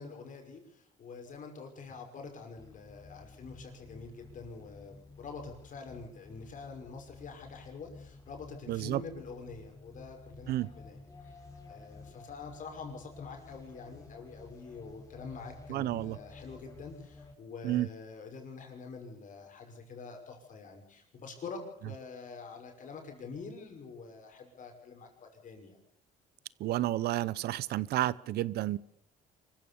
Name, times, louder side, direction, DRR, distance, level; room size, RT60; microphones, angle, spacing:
voice 1, 0.0-11.0 11.2-11.3 11.7-25.8, left 4 dB, 50° left, 3 dB, 5.9 m, -46 dB
sound 1, 2.5-17.3, left 3 dB, 20° left, 4.6 m, -52 dB
voice 2, 8.7-9.0 10.5-10.7 15.7-16.2 17.6-17.9 26.6-28.8, right 14 dB, 70° right, 21 dB, 0.8 m, -31 dB
25.0 x 15.0 x 7.1 m, 0.72 s
cardioid pair, 110°, 17 cm